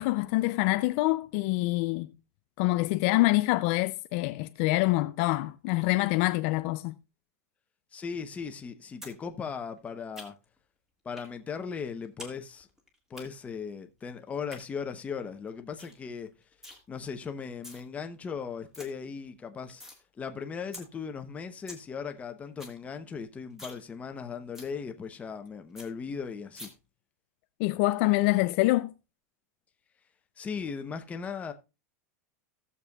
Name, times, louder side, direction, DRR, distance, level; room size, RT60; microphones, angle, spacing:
voice 1, 0.0-2.1 2.6-7.0 27.6-28.9, left 20 dB, 50° left, 0.4 m, -26 dB
voice 2, 7.9-10.3 11.0-12.7 13.1-16.3 16.9-19.8 20.2-26.7 30.4-31.5, left 6 dB, 15° left, 0.8 m, -38 dB
sound 1, 9.0-9.2 9.5-10.6 11.2-11.3 11.6-12.3 12.6-13.2 14.3-14.6 15.1-15.2 15.5-15.6 15.8-16.0 16.3-16.8 17.4-17.8 18.2-18.3 18.5-18.9 19.2-20.0 20.3-20.4 20.7-20.8 21.2-21.3 21.5-21.8 22.2-22.3 22.5-22.8 23.1-23.2 23.5-23.8 24.1-24.2 24.5-24.7 25.1-25.2 25.4-25.5 25.7-25.9 26.5-26.7, left 1 dB, 5° right, 1.9 m, -45 dB
17.5 x 6.9 x 2.3 m
supercardioid pair, 150°, 8 cm